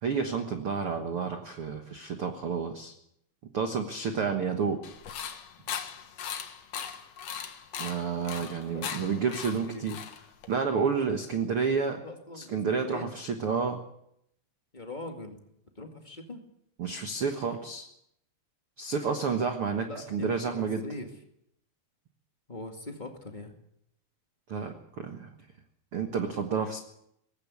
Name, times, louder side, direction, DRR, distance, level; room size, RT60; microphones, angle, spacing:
voice 1, 0.0-2.9 3.5-4.8 7.8-10.0 10.5-12.0 12.3-13.8 16.8-17.9 18.8-20.8 24.5-25.3 25.9-26.8, right 5 dB, 80° right, 5 dB, 1.2 m, -30 dB
sound 1, 4.8-10.6, left 8 dB, 60° left, 1.8 m, -39 dB
voice 2, 8.4-9.3 9.6-9.8 10.5-10.7 11.0-11.2 12.0-13.1 14.7-15.4 15.8-16.4 19.9-21.1 22.5-23.5, left 2 dB, 30° left, 3 dB, 0.8 m, -42 dB
19.5 x 15.5 x 8.5 m, 0.75 s
omnidirectional pair, 4.9 m